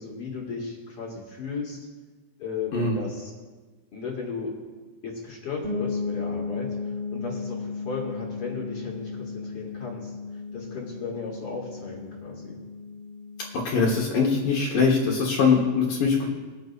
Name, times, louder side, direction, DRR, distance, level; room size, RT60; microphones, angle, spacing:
voice 1, 0.0-1.9 2.4-3.3 3.9-4.5 5.0-10.1 10.5-12.6, left 4 dB, 45° left, -3 dB, 2.4 m, -35 dB
sound 1, 5.6-15.3, left 4 dB, 5° right, 3.2 m, -35 dB
voice 2, 13.7-16.3, left 5 dB, 70° left, -3 dB, 2.7 m, -22 dB
21.5 x 9.3 x 2.5 m, 1.3 s
omnidirectional pair, 4.2 m